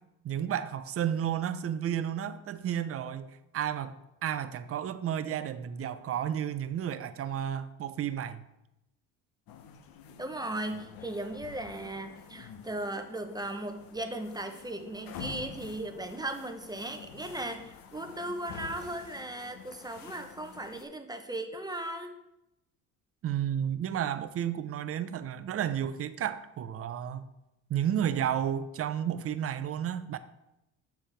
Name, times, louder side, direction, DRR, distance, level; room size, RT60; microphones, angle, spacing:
voice 1, 0.2-3.9 4.2-8.4 23.2-27.3 27.7-30.2, right 9 dB, 40° right, 0.6 m, -32 dB
sound 1, 9.5-20.8, left 7 dB, 70° left, 0.9 m, -48 dB
voice 2, 10.2-22.1, right 1 dB, 10° right, 0.8 m, -37 dB
7.0 x 5.8 x 3.4 m
supercardioid pair, 90°, 36 cm